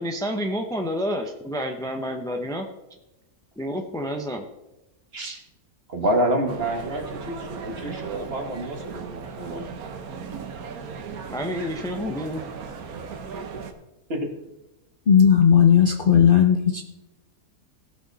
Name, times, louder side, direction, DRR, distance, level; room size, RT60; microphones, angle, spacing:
voice 1, 0.0-2.7 3.6-4.4 5.2-5.4 11.3-12.4, equal, 5° left, 4 dB, 0.4 m, -29 dB
voice 2, 5.9-9.6 14.1-14.2, right 1 dB, 40° right, 3 dB, 1.7 m, -27 dB
sound 1, 6.5-13.7, right 5 dB, 70° right, 1.4 m, -37 dB
voice 3, 15.1-16.8, left 8 dB, 45° left, 4 dB, 0.7 m, -16 dB
17.5 x 6.5 x 4.1 m, 0.94 s
omnidirectional pair, 1.7 m